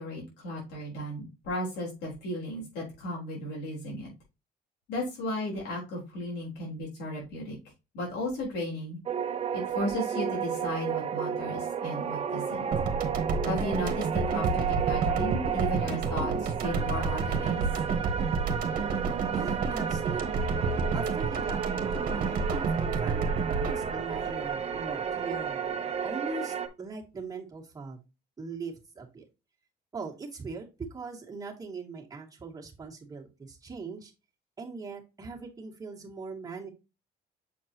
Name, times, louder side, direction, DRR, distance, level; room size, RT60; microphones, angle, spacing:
voice 1, 0.0-4.1 4.9-7.6 7.9-9.0 9.5-12.7 13.4-17.7, left 1 dB, 80° left, -4 dB, 4.0 m, -35 dB
sound 1, 9.1-26.7, right 7 dB, 35° right, 0.9 m, -32 dB
sound 2, 12.7-25.2, right 4 dB, 55° right, 1.4 m, -30 dB
voice 2, 19.3-20.5 20.9-28.0 28.4-29.3 29.9-34.1 34.6-36.7, right 4 dB, 20° right, -1 dB, 2.0 m, -40 dB
7.3 x 4.4 x 2.9 m, 0.27 s
cardioid pair, 110°, 17 cm